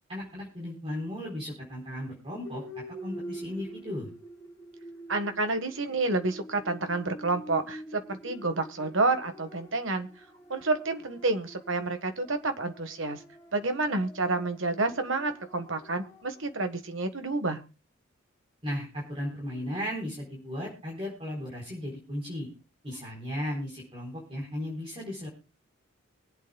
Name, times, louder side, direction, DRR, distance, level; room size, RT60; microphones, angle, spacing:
voice 1, 0.1-4.1 18.6-22.5 22.8-25.3, left 1 dB, 25° right, -4 dB, 4.2 m, -36 dB
sound 1, 2.4-16.6, equal, 20° left, 3.0 m, -46 dB
voice 2, 5.1-10.1 10.5-13.2 13.5-17.6, right 3 dB, 65° right, 7 dB, 1.5 m, -29 dB
24.0 x 8.5 x 2.3 m, 0.32 s
head